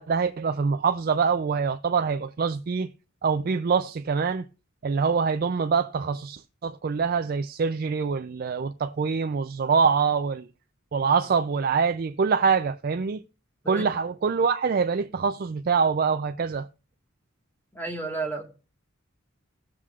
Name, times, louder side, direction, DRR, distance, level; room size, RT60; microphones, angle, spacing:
voice 1, 0.0-2.9 3.2-4.5 4.8-10.5 10.9-13.2 13.7-16.7, right 5 dB, 45° right, 0.4 m, -25 dB
voice 2, 17.7-18.5, right 3 dB, 10° left, 1.6 m, -31 dB
19.0 x 7.3 x 2.4 m
head